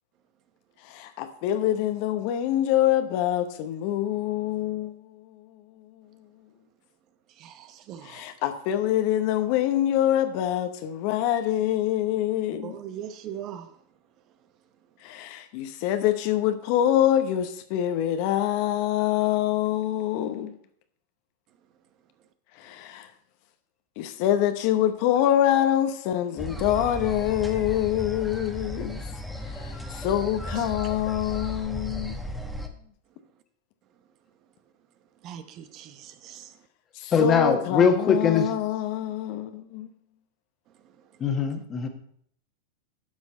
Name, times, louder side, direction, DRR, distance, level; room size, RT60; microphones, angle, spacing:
voice 1, 0.8-4.9 8.0-12.7 15.0-20.5 22.6-23.1 24.0-29.0 29.5-32.2 37.0-39.9, left 11 dB, 55° left, 0.9 m, -25 dB
voice 2, 7.4-8.2 12.6-13.7 30.6-30.7 35.2-36.4, right 10 dB, 45° right, 0.8 m, -40 dB
sound 1, 26.4-32.7, equal, ahead, 1.1 m, -35 dB
voice 3, 37.1-38.5 41.2-41.9, left 6 dB, 30° left, 1.5 m, -21 dB
11.5 x 6.2 x 4.2 m
hypercardioid pair, 95°, 0 cm